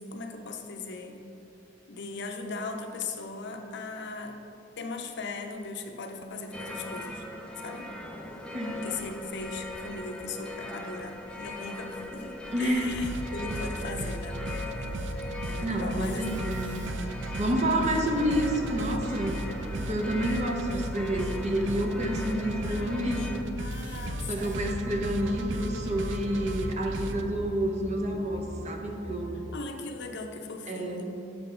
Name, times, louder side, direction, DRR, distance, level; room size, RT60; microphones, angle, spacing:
voice 1, 0.1-1.2 1.9-4.4 4.8-7.2 7.6-7.9 8.8-15.2 15.4-16.2 22.7-24.6 29.5-31.0, left 3 dB, 60° left, 4 dB, 0.7 m, -38 dB
sound 1, 6.5-23.4, left 2 dB, 5° left, 0.5 m, -40 dB
voice 2, 12.5-13.0 15.6-16.8 17.4-19.4 19.8-23.4 24.3-29.5 30.7-31.0, equal, 35° right, 1 dB, 0.8 m, -29 dB
sound 2, 12.8-27.3, right 1 dB, 65° right, 0.5 m, -36 dB
sound 3, 23.8-29.5, equal, 40° left, 0.9 m, -42 dB
7.7 x 4.2 x 5.0 m, 2.9 s
head